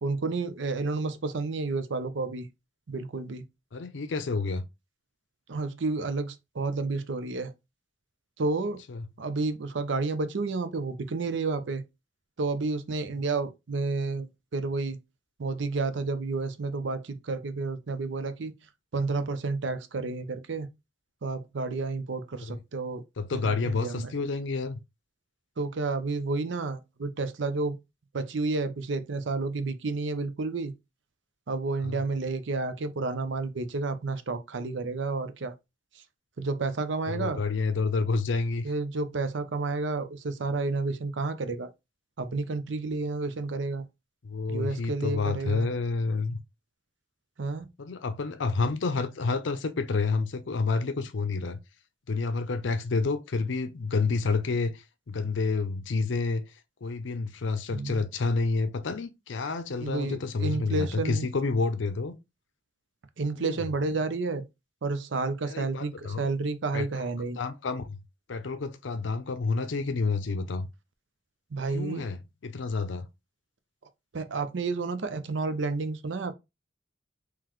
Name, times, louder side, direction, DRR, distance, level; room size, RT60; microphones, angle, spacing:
voice 1, 0.0-2.5 2.9-3.4 5.5-7.5 8.4-8.8 9.2-11.8 12.4-14.3 14.5-15.0 15.4-18.5 18.9-20.7 21.2-23.0 23.3-24.1 25.6-27.8 28.1-30.7 31.5-35.5 36.4-37.4 38.6-41.7 42.2-43.8 44.5-45.7 47.4-47.7 57.7-58.0 59.8-61.3 63.2-64.4 64.8-67.4 71.5-72.0 74.1-76.3, right 3 dB, 75° right, 0.6 m, -30 dB
voice 2, 3.7-4.6 8.9-9.1 22.4-22.6 23.2-24.8 31.8-32.0 37.1-38.7 44.2-46.4 47.8-51.6 52.1-56.4 56.8-62.1 63.4-63.7 65.5-66.3 66.7-67.0 67.3-68.0 68.3-70.7 71.7-73.1, left 4 dB, 80° left, 0.5 m, -29 dB
3.9 x 3.0 x 3.0 m
head